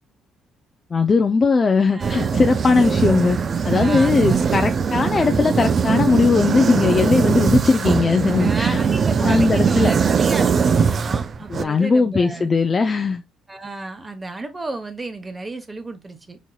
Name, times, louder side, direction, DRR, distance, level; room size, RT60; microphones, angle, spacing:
voice 1, 0.9-8.8 9.2-9.9 11.5-13.2, left 4 dB, 30° left, 0.5 m, -19 dB
voice 2, 1.9-2.3 3.7-4.4 8.4-12.5 13.5-16.4, right 2 dB, 20° right, 1.0 m, -32 dB
sound 1, 2.0-11.6, right 6 dB, 40° right, 0.4 m, -20 dB
4.5 x 4.2 x 2.3 m
cardioid pair, 115°, 0 cm